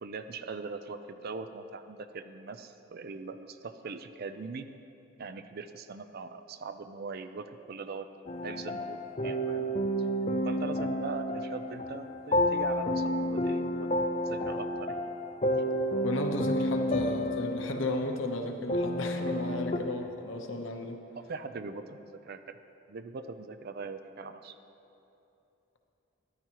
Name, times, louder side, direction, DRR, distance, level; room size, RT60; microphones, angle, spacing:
voice 1, 0.0-4.7 5.2-8.1 8.4-9.7 10.4-13.9 14.2-15.0 19.3-19.6 21.2-22.6 22.9-24.6, right 4 dB, 45° right, 10 dB, 0.4 m, -41 dB
sound 1, 8.3-19.8, equal, 30° left, 0.5 m, -30 dB
voice 2, 16.0-21.0, left 1 dB, 60° left, 4 dB, 0.8 m, -34 dB
13.5 x 11.0 x 2.9 m, 2.9 s
head